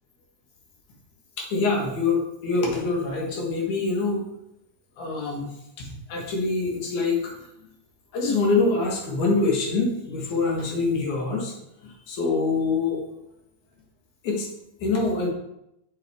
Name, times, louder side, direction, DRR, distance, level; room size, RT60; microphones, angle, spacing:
voice 1, 1.4-4.3 5.0-5.5 5.8-7.3 8.1-11.5 11.8-13.0 14.2-14.5 14.8-15.3, left 3 dB, 75° left, 0 dB, 2.9 m, -25 dB
6.8 x 6.0 x 3.6 m, 0.82 s
omnidirectional pair, 3.5 m